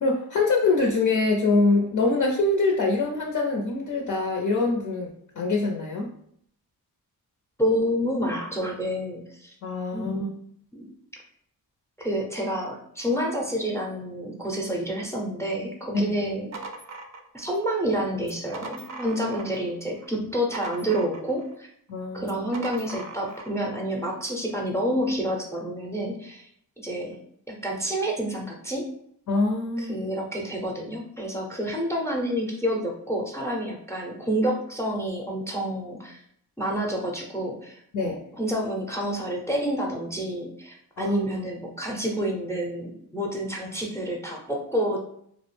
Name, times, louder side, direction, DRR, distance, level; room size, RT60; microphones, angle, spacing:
voice 1, 0.0-5.1 5.4-6.1 9.6-10.1 15.9-16.1 21.9-22.3 29.3-30.1 37.9-38.2 41.0-41.2, left 3 dB, 55° left, 0 dB, 0.5 m, -24 dB
voice 2, 7.6-9.5 9.9-10.3 10.7-10.9 12.0-16.5 17.3-21.7 22.1-26.5 26.8-27.2 27.5-28.9 29.8-36.2 36.6-45.0, equal, 5° left, 0 dB, 0.5 m, -29 dB
sound 1, 16.2-17.7 18.2-19.7 20.0-21.5 22.2-23.6, right 3 dB, 45° right, 0.5 m, -40 dB
2.3 x 2.0 x 3.1 m, 0.67 s
cardioid pair, 60°, 37 cm